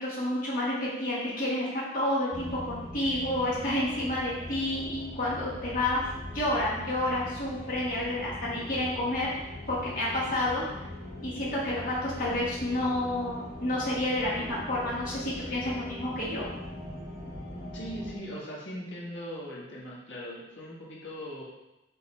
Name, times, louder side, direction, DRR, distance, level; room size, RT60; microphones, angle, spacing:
voice 1, 0.0-6.0 6.3-9.3 9.7-10.6 11.2-16.5, left 1 dB, 45° left, -7 dB, 1.3 m, -30 dB
sound 1, 2.3-18.1, left 1 dB, 15° right, 2.3 m, -41 dB
voice 2, 17.7-21.4, equal, 80° left, -5 dB, 1.7 m, -39 dB
6.7 x 3.9 x 4.3 m, 0.97 s
head